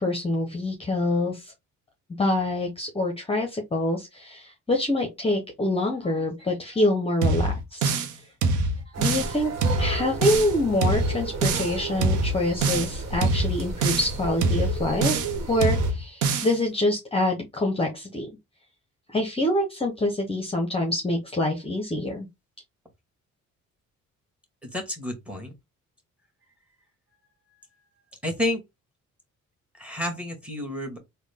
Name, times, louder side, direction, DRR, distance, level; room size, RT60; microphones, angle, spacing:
voice 1, 0.0-1.5 2.2-7.9 9.0-9.5 9.8-18.3 19.1-22.3, left 1 dB, 20° left, 0.8 m, -26 dB
sound 1, 7.2-8.1 8.4-9.3 9.6-10.5 10.8-11.7 12.0-12.9 13.2-14.1 14.4-15.3 15.6-16.5, right 3 dB, 85° right, 0.8 m, -24 dB
sound 2, 8.9-15.9, right 2 dB, 60° right, 1.3 m, -33 dB
voice 2, 24.6-25.5 28.2-28.6 29.8-31.0, left 1 dB, 5° right, 1.6 m, -30 dB
3.7 x 2.2 x 3.5 m
cardioid pair, 90°, 30 cm